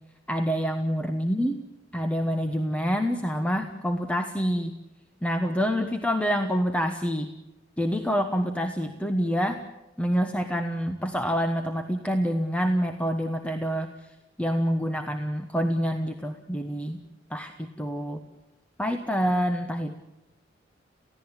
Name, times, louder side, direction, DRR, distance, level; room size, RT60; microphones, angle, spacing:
voice 1, 0.3-1.6 1.9-4.7 5.2-7.3 7.8-9.6 10.0-13.9 14.4-17.0 17.3-18.2 18.8-20.0, equal, 5° left, 5 dB, 1.1 m, -27 dB
29.0 x 16.5 x 8.9 m, 1.0 s
head